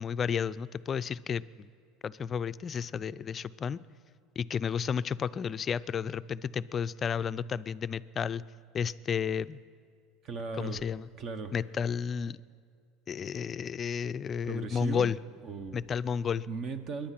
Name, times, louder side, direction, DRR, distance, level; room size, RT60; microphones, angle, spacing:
voice 1, 0.0-1.7 2.0-3.8 4.4-8.4 8.7-9.6 10.6-11.1 11.5-12.4 13.1-15.2 15.7-16.5, left 7 dB, 35° left, 15 dB, 0.4 m, -32 dB
voice 2, 10.2-10.8 11.2-11.5 14.4-15.1 15.4-15.8 16.5-17.1, right 4 dB, 45° right, 10 dB, 1.2 m, -37 dB
23.0 x 10.5 x 5.9 m, 2.3 s
supercardioid pair, 100°, 0 cm